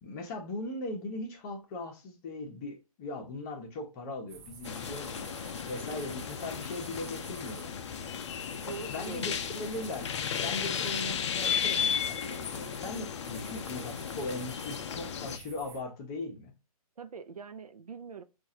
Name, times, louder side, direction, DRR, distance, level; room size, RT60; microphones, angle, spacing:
voice 1, 0.0-5.3 5.7-7.7 8.8-10.1 10.4-16.5, left 2 dB, 30° left, 1.0 m, -39 dB
sound 1, 4.3-15.8, right 5 dB, 25° right, 0.7 m, -50 dB
sound 2, 4.6-15.4, left 7 dB, 50° left, 0.5 m, -34 dB
voice 2, 8.5-9.4 17.0-18.2, right 6 dB, 80° right, 0.6 m, -43 dB
5.8 x 2.6 x 2.8 m
figure-of-eight pair, 135°, 19 cm